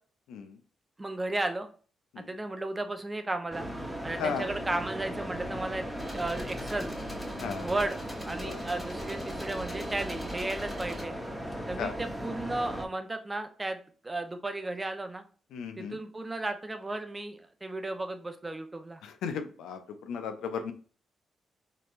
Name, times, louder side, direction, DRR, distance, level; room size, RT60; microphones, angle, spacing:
voice 1, 1.0-1.7 2.2-3.7 4.0-5.8 6.1-6.9 7.6-8.0 8.3-11.1 11.7-13.8 14.0-15.2 15.8-19.0, right 2 dB, 25° right, 7 dB, 0.7 m, -34 dB
sound 1, 3.5-12.9, equal, 5° right, 1.1 m, -37 dB
voice 2, 4.2-4.5 7.3-7.7 8.4-8.6 11.8-12.0 15.5-16.0 19.0-20.7, left 6 dB, 75° left, 8 dB, 0.5 m, -35 dB
sound 2, 6.0-11.0, left 2 dB, 10° left, 1.7 m, -45 dB
4.0 x 3.2 x 2.5 m, 0.40 s
hypercardioid pair, 45°, 0 cm